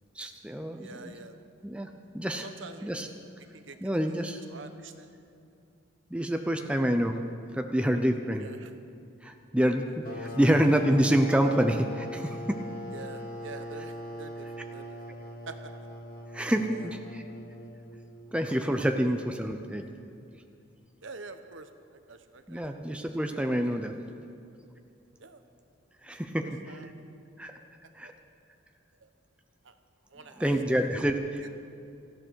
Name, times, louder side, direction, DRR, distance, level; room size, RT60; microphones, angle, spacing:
voice 1, 0.2-1.1 1.6-2.5 2.8-3.1 3.8-4.4 6.1-7.2 7.5-8.5 9.2-9.9 10.1-12.4 16.3-17.2 18.3-19.8 22.5-23.9 26.0-26.8 27.4-27.5 28.0-28.1 30.4-31.2, equal, 5° right, 5 dB, 0.6 m, -27 dB
voice 2, 0.7-1.4 2.4-2.9 3.5-3.8 4.1-4.2 4.5-5.1 8.4-8.7 10.2-10.3 12.9-15.0 15.5-15.7 16.7-16.9 21.0-21.7 22.1-22.6 25.2-25.4 26.4-26.9 28.0-28.1 29.0-29.1 29.6-29.7 30.1-30.9, right 3 dB, 70° right, 8 dB, 0.9 m, -46 dB
sound 1, 10.0-18.4, equal, 45° left, 1.6 m, -41 dB
18.0 x 14.0 x 4.6 m, 2.5 s
head